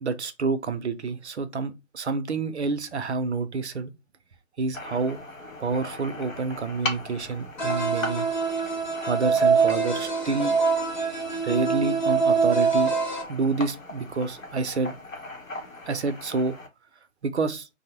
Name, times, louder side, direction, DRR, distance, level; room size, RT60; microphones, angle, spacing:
voice 1, 0.0-3.9 4.6-5.2 5.6-8.3 9.1-10.6 11.0-11.1 11.4-12.9 13.3-14.9 15.9-16.5 17.2-17.7, right 4 dB, 60° right, 0.5 m, -28 dB
sound 1, 4.7-16.7, left 2 dB, 85° left, 0.9 m, -39 dB
sound 2, 7.6-13.2, right 5 dB, 35° left, 0.6 m, -24 dB
2.6 x 2.0 x 2.8 m
figure-of-eight pair, 145°, 39 cm